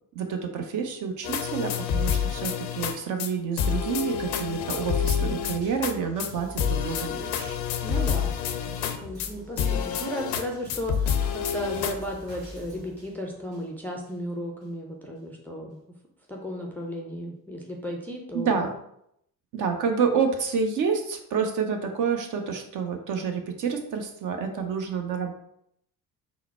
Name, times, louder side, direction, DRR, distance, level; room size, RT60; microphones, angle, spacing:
voice 1, 0.1-7.6 18.3-18.7 19.5-25.3, right 6 dB, 40° right, 5 dB, 0.6 m, -28 dB
sound 1, 1.2-2.9 3.2-3.3 3.6-5.9 6.2-6.3 6.6-9.3 9.6-10.4 10.7-11.9, left 7 dB, 55° left, 0.5 m, -28 dB
sound 2, 4.1-14.1 14.6-14.7, left 1 dB, 85° right, 1.1 m, -44 dB
voice 2, 7.8-8.3 8.8-15.8 16.3-18.6, equal, 5° left, -1 dB, 0.4 m, -35 dB
3.8 x 2.0 x 4.1 m, 0.74 s
figure-of-eight pair, 50°, 48 cm